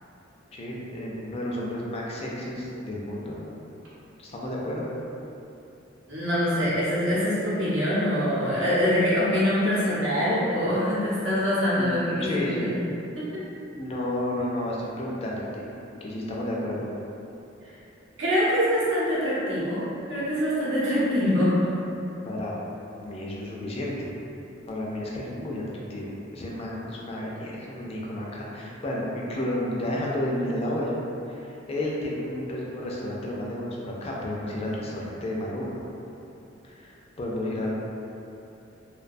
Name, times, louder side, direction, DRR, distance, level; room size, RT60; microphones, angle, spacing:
voice 1, 0.5-3.5 4.2-4.9 11.7-12.8 13.8-15.7 16.0-16.9 22.2-22.6 23.0-24.1 24.7-25.6 25.9-31.0 31.3-35.8 36.6-37.7, left 1 dB, 30° left, -4 dB, 0.3 m, -31 dB
voice 2, 6.1-12.8 13.2-13.3 17.6-17.7 18.2-19.8 20.1-21.6, equal, 70° right, -9 dB, 0.8 m, -24 dB
2.3 x 2.2 x 2.5 m, 2.8 s
head